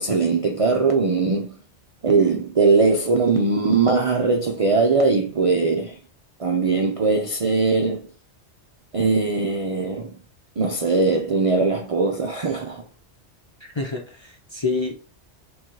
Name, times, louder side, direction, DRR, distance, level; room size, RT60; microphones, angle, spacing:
voice 1, 0.0-1.5 2.0-5.9 6.4-8.0 8.9-10.1 10.6-12.8, right 4 dB, 50° right, 0.4 m, -20 dB
voice 2, 13.7-15.0, left 3 dB, 35° left, 0.5 m, -27 dB
3.8 x 3.1 x 2.9 m
omnidirectional pair, 1.2 m